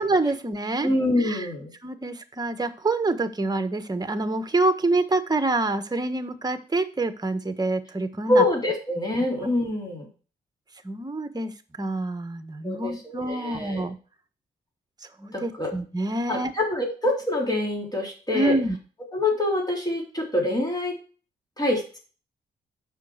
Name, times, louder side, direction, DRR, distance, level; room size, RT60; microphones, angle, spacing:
voice 1, 0.0-0.9 1.2-1.5 1.8-8.4 10.8-11.5 11.8-14.0 15.2-16.5 18.3-18.8, right 2 dB, 20° right, 9 dB, 1.4 m, -26 dB
voice 2, 0.8-1.7 8.3-10.1 12.6-13.9 15.3-15.7 16.3-18.6 19.1-21.0 21.6-22.0, left 1 dB, 20° left, -1 dB, 3.9 m, -25 dB
7.3 x 6.0 x 6.4 m, 0.37 s
supercardioid pair, 55°, 18 cm